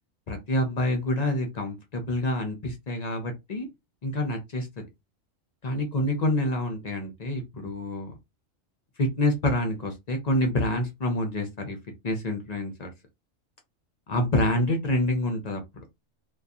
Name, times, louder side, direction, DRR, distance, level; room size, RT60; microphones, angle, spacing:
voice 1, 0.3-3.7 4.0-4.7 5.6-8.1 9.0-11.8 12.0-12.9 14.1-15.8, left 1 dB, 55° left, 0.4 m, -27 dB
2.6 x 2.3 x 2.3 m
omnidirectional pair, 1.3 m